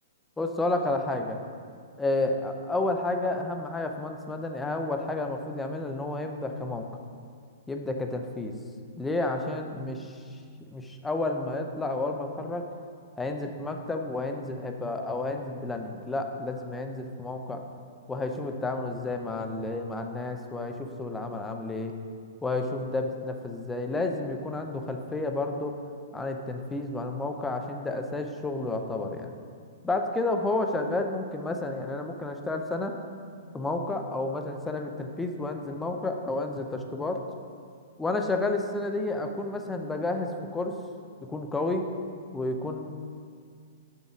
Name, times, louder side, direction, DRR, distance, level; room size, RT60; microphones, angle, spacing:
voice 1, 0.4-1.4 2.0-6.9 7.7-8.6 9.0-10.2 10.7-12.7 13.2-17.6 18.1-21.9 22.4-25.8 26.1-29.3 29.8-32.9 33.5-37.2 38.0-40.7 41.2-41.9 42.3-42.9, left 2 dB, 10° left, 4 dB, 0.7 m, -31 dB
6.7 x 6.2 x 5.2 m, 2.2 s
figure-of-eight pair, 115°, 0 cm